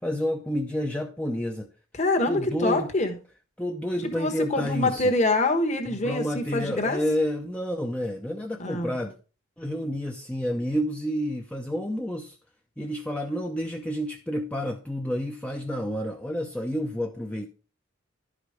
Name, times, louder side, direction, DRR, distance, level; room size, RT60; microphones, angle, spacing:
voice 1, 0.0-1.7 2.3-2.9 3.6-5.1 5.9-9.1 9.6-12.4 12.8-17.5, equal, 5° left, 2 dB, 0.6 m, -29 dB
voice 2, 2.0-3.1 4.1-7.0 8.6-8.9, left 2 dB, 30° left, 4 dB, 1.3 m, -25 dB
11.5 x 5.0 x 5.0 m, 0.35 s
head